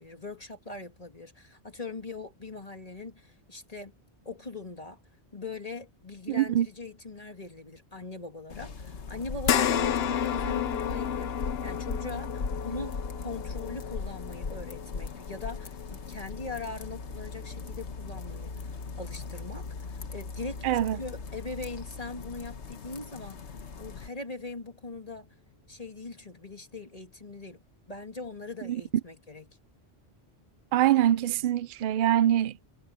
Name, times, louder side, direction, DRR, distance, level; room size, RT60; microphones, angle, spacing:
voice 1, 0.0-3.9 4.2-5.0 5.3-23.4 23.8-25.3 25.7-27.6 27.9-29.5, left 3 dB, 35° left, 2.5 m, -41 dB
voice 2, 6.3-6.7 20.6-21.0 28.6-28.8 30.7-32.6, right 12 dB, 60° right, 0.7 m, -24 dB
sound 1, 8.5-24.1, left 4 dB, 85° left, 1.6 m, -39 dB
sound 2, 9.4-18.1 18.5-18.6 20.1-20.2, left 9 dB, 65° left, 0.9 m, -32 dB
omnidirectional pair, 1.1 m